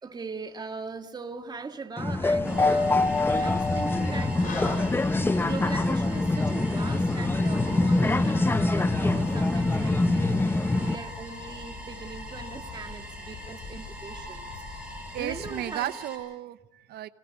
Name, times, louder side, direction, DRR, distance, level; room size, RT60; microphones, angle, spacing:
voice 1, 0.0-10.5 10.8-16.0, right 4 dB, 25° right, 1.7 m, -40 dB
sound 1, 2.0-11.0, left 2 dB, 15° left, 0.8 m, -24 dB
sound 2, 2.2-15.7, left 5 dB, 50° left, 4.0 m, -43 dB
sound 3, 2.4-16.2, right 1 dB, 5° right, 7.3 m, -43 dB
voice 2, 15.1-17.1, right 14 dB, 70° right, 0.9 m, -34 dB
28.0 x 18.0 x 8.2 m
cardioid pair, 110°, 17 cm